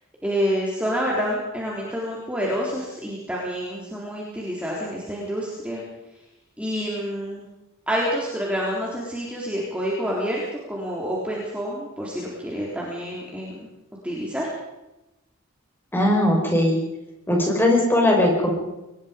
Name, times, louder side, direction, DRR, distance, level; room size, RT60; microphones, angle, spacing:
voice 1, 0.2-5.8 6.6-7.4 7.9-10.4 10.7-13.7 14.0-14.5, equal, 5° right, -4 dB, 3.8 m, -28 dB
voice 2, 15.9-16.8 17.3-18.5, left 1 dB, 10° left, 0 dB, 5.3 m, -19 dB
24.0 x 21.0 x 5.3 m, 0.96 s
head